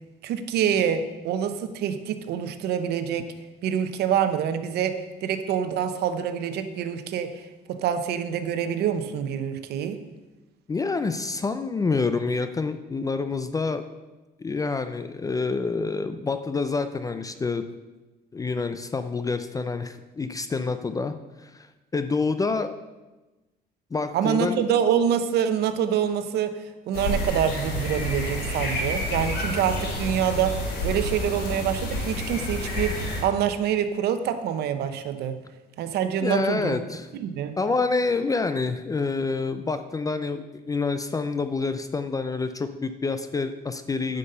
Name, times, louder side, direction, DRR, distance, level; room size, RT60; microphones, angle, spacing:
voice 1, 0.2-3.3 3.6-10.0 24.1-35.4 35.8-36.8 37.1-37.6, right 8 dB, 75° right, 9 dB, 0.9 m, -26 dB
voice 2, 10.7-13.8 14.4-17.6 18.3-22.7 23.9-24.6 36.2-37.1 37.6-44.2, left 4 dB, 20° left, 10 dB, 0.5 m, -27 dB
sound 1, 26.9-33.2, left 1 dB, 85° left, 3.2 m, -29 dB
9.8 x 5.3 x 6.7 m, 1.1 s
cardioid pair, 110°, 17 cm